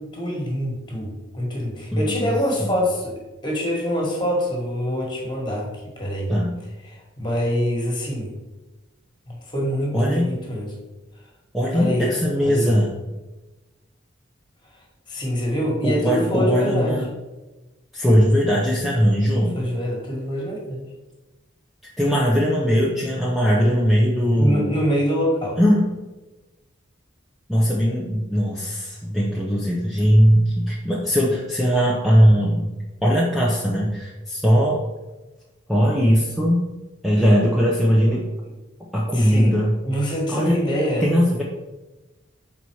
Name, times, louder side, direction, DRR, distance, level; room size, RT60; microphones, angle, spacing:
voice 1, 0.1-3.1 3.4-6.3 6.9-8.3 9.3-10.7 11.7-12.1 12.4-12.7 15.1-17.0 19.5-20.9 24.3-25.6 39.1-39.6 39.8-41.1, equal, 20° left, -2 dB, 1.6 m, -25 dB
voice 2, 1.9-2.3 2.6-2.8 6.3-6.6 9.9-10.3 11.5-13.0 15.8-17.1 17.9-19.6 22.0-24.8 25.6-25.9 27.5-32.7 33.0-34.8 35.7-36.6 37.0-38.2 38.9-39.8 40.3-40.6 41.0-41.4, equal, ahead, -5 dB, 0.6 m, -19 dB
6.0 x 4.1 x 4.6 m, 1.1 s
head